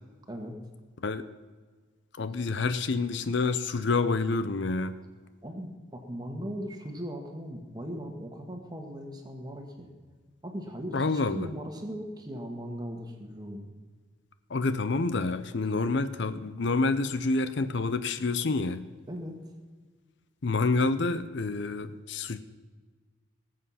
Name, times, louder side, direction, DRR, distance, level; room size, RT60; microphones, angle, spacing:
voice 1, 2.2-5.0 10.9-11.5 14.5-18.9 20.4-22.4, left 3 dB, 55° left, 12 dB, 0.6 m, -28 dB
voice 2, 5.4-9.9 10.4-13.7 19.1-19.4, equal, 20° right, 3 dB, 1.7 m, -38 dB
19.5 x 7.8 x 5.7 m, 1.4 s
head